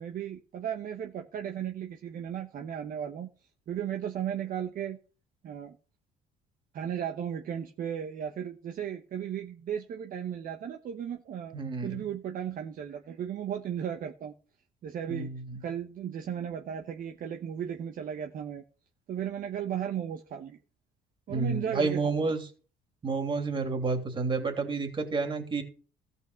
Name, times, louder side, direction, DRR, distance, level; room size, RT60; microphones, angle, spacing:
voice 1, 0.0-3.3 3.7-5.0 5.4-5.8 6.7-11.6 11.8-14.3 14.8-15.3 15.6-18.6 19.1-20.6 21.3-22.3, right 9 dB, 55° right, 5 dB, 1.0 m, -35 dB
voice 2, 11.5-12.1 15.1-15.6 21.3-22.4 23.0-25.6, right 4 dB, 30° right, 4 dB, 3.1 m, -30 dB
14.0 x 5.6 x 6.9 m, 0.37 s
cardioid pair, 110°, 17 cm